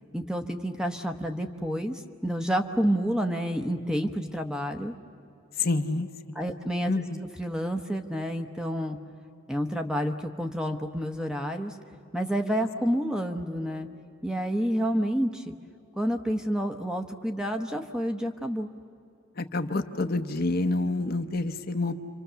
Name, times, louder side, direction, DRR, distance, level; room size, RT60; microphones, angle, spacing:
voice 1, 0.1-4.9 6.4-7.0 7.4-9.0 9.5-11.8 12.1-13.9 14.2-15.5 16.0-18.7, equal, 5° right, 5 dB, 0.9 m, -29 dB
voice 2, 5.6-6.1 6.9-7.2 19.4-21.9, left 2 dB, 45° left, 7 dB, 0.9 m, -27 dB
29.5 x 25.5 x 6.9 m, 2.6 s
head